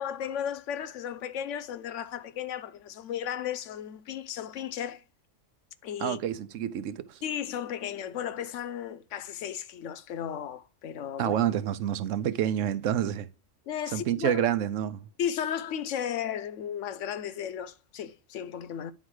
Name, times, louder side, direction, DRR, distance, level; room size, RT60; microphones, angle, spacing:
voice 1, 0.0-5.0 5.8-6.2 7.2-11.4 13.7-14.4 15.2-18.9, left 9 dB, 80° left, 1.0 m, -34 dB
voice 2, 6.0-7.2 11.2-13.3 13.9-15.1, right 10 dB, 85° right, 1.0 m, -28 dB
9.4 x 3.8 x 4.7 m
omnidirectional pair, 1.3 m